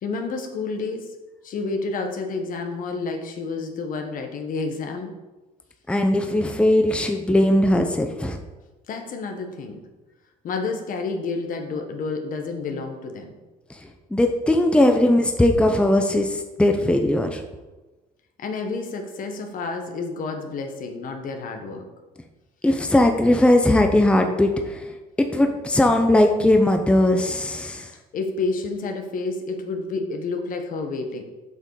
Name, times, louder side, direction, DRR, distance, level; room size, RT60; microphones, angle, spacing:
voice 1, 0.0-1.2 1.4-5.1 8.9-9.8 10.4-13.3 18.4-21.9 28.1-31.2, left 3 dB, 55° left, 5 dB, 1.4 m, -29 dB
voice 2, 5.9-8.4 14.1-17.4 22.6-24.8 25.2-27.9, left 1 dB, 5° left, 5 dB, 0.8 m, -19 dB
7.5 x 5.5 x 4.8 m, 1.1 s
supercardioid pair, 85°, 17 cm